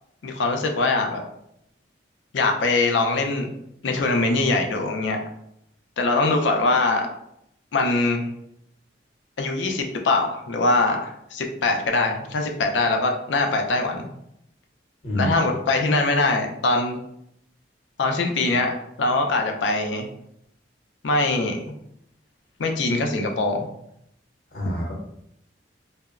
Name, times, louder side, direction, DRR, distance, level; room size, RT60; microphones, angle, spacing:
voice 1, 0.2-1.2 2.3-3.5 3.8-5.2 6.0-7.1 7.7-8.3 9.4-14.1 15.1-17.0 18.0-20.1 21.0-21.7 22.6-23.7, left 3 dB, 75° left, 3 dB, 0.4 m, -22 dB
voice 2, 15.0-15.4 24.5-24.9, equal, 50° left, -3 dB, 0.8 m, -26 dB
2.9 x 2.0 x 2.4 m, 0.76 s
head